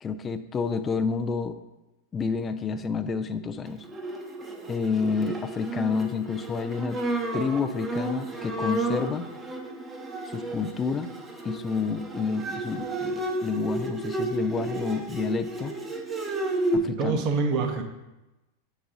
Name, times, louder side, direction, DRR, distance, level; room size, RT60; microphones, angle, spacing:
voice 1, 0.0-1.6 2.1-3.9 4.7-7.0 7.3-9.3 10.2-11.1 11.4-15.8 16.7-17.2, left 5 dB, 20° left, 11 dB, 0.4 m, -29 dB
Bowed string instrument, 3.8-16.8, right 2 dB, 15° right, 0.8 m, -32 dB
voice 2, 16.8-17.8, right 4 dB, 40° right, 6 dB, 0.8 m, -26 dB
7.8 x 4.0 x 3.8 m, 1.0 s
figure-of-eight pair, 90°, 0 cm